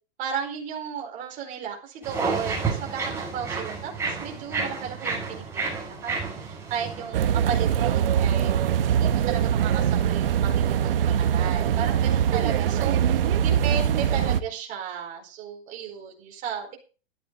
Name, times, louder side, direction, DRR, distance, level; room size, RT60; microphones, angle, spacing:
voice 1, 0.2-16.8, right 7 dB, 25° right, 1 dB, 4.6 m, -34 dB
sound 1, 2.0-7.1, right 4 dB, 5° right, 6.7 m, -30 dB
sound 2, 7.1-14.4, right 9 dB, 55° right, 1.1 m, -22 dB
14.0 x 10.5 x 4.0 m, 0.35 s
hypercardioid pair, 165°, 33 cm